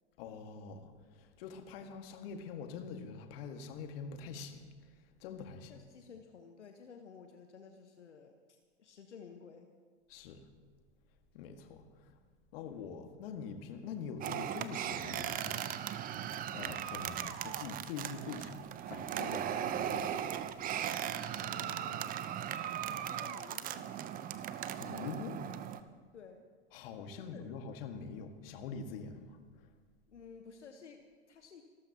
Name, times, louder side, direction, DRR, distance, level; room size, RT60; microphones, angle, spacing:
voice 1, 0.2-4.6 5.2-5.7 10.1-10.5 11.3-12.2 12.5-15.7 16.5-20.3 24.8-25.5 26.7-29.4, left 5 dB, 55° left, 1.9 m, -44 dB
voice 2, 5.7-9.7 21.4-22.1 22.8-24.0 26.1-26.5 27.1-27.4 30.1-31.6, left 6 dB, 80° left, 1.3 m, -54 dB
sound 1, 14.2-25.8, right 10 dB, 25° right, 0.7 m, -38 dB
28.0 x 13.5 x 2.9 m
hypercardioid pair, 100°, 35 cm